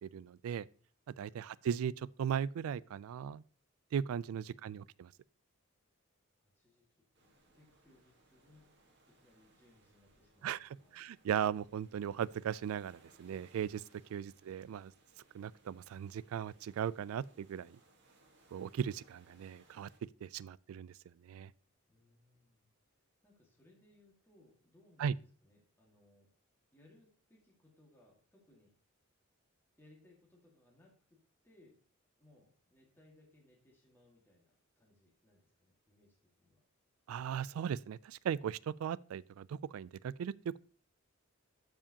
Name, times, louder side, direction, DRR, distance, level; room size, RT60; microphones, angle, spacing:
voice 1, 0.0-0.7 1.2-3.4 3.9-5.1 10.4-13.8 14.1-14.9 15.3-17.8 18.5-19.9 20.2-20.9 21.2-21.5 25.0-25.1 37.1-40.6, right 8 dB, 80° right, 0.3 m, -38 dB
voice 2, 1.2-1.6 4.5-5.0 6.4-6.9 7.2-8.7 9.1-11.2 21.9-22.7 23.2-26.3 26.7-28.7 29.8-31.8 32.2-36.6, left 1 dB, 10° left, 1.8 m, -67 dB
sound 1, 7.1-20.0, right 2 dB, 55° right, 1.6 m, -68 dB
12.5 x 4.9 x 2.8 m
head